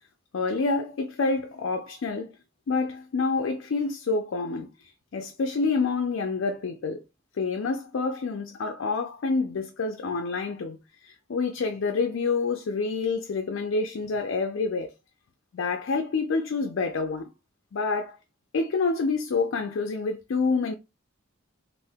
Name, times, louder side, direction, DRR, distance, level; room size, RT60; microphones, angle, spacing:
voice 1, 0.3-2.3 2.7-4.7 5.1-7.0 7.4-10.8 11.0-14.9 15.5-17.2 17.7-18.2 18.5-20.7, left 4 dB, 70° left, 0.4 m, -27 dB
2.8 x 2.4 x 3.4 m
head